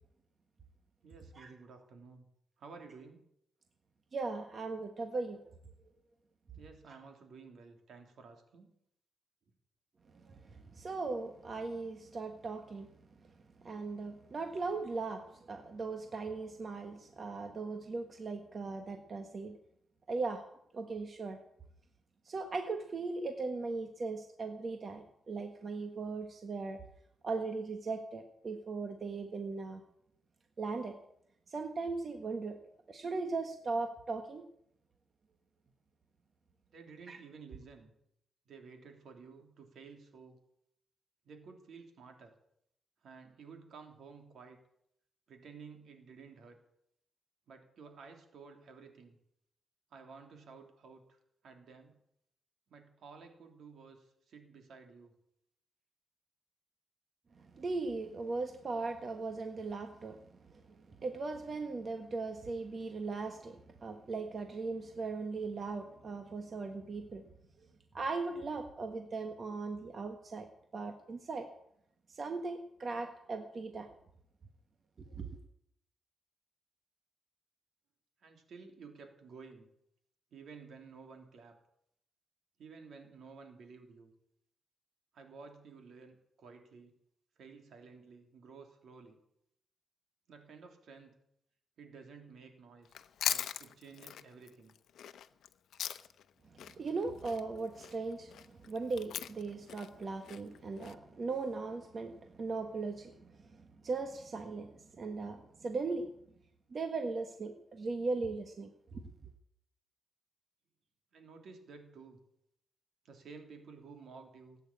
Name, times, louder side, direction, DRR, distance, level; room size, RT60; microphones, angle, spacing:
voice 1, 1.0-2.3 2.6-3.3 6.6-8.7 36.7-37.9 38.5-40.4 41.2-42.3 43.0-44.6 45.3-46.6 47.5-49.2 49.9-52.0 52.7-55.1 78.2-79.7 80.3-81.6 82.6-84.1 85.1-87.0 87.4-89.2 90.3-91.2 91.8-93.0 93.3-94.8 111.1-112.2 113.0-114.6, right 5 dB, 70° right, 4 dB, 3.2 m, -53 dB
voice 2, 4.1-5.4 10.1-12.9 13.6-19.6 20.1-20.4 20.7-21.4 22.2-26.8 27.2-29.8 30.6-31.0 31.5-32.6 32.9-34.4 37.1-37.2 57.4-60.2 60.7-67.2 67.9-70.5 70.7-71.5 72.1-73.9 75.2-75.4 96.8-103.2 103.5-104.7 105.0-106.1 106.7-109.0, right 3 dB, 40° right, 5 dB, 1.4 m, -38 dB
Chewing mastication, 92.8-96.3 96.6-100.9, left 9 dB, 90° left, 0.8 m, -40 dB
18.0 x 9.2 x 8.7 m, 0.74 s
wide cardioid pair, 140°, 0 cm